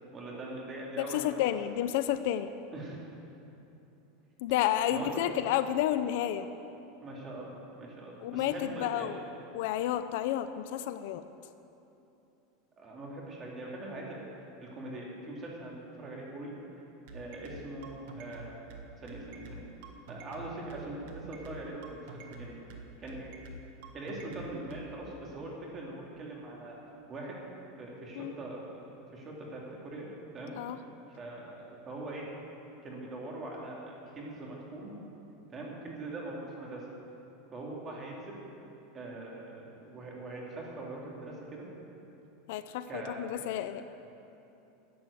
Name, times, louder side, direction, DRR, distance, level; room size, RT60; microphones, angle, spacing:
voice 1, 0.1-1.4 2.7-3.0 4.9-5.2 7.0-9.1 12.8-14.3 14.6-15.7 16.0-16.5 17.1-18.6 19.0-19.6 20.1-22.5 23.0-23.3 23.9-26.8 27.1-27.4 27.8-30.1 30.3-30.5 31.2-32.3 32.8-34.9 35.5-36.9 37.5-38.4 38.9-41.7 42.9-43.2, right 2 dB, 25° right, -3 dB, 2.4 m, -42 dB
voice 2, 1.0-2.5 4.4-6.5 8.2-9.2 9.5-11.2 28.2-28.3 30.6-30.8 42.5-43.8, left 11 dB, 60° left, 11 dB, 0.5 m, -31 dB
sound 1, 17.1-24.9, right 2 dB, 60° right, 1.4 m, -46 dB
12.0 x 7.9 x 8.2 m, 2.9 s
supercardioid pair, 160°, 0 cm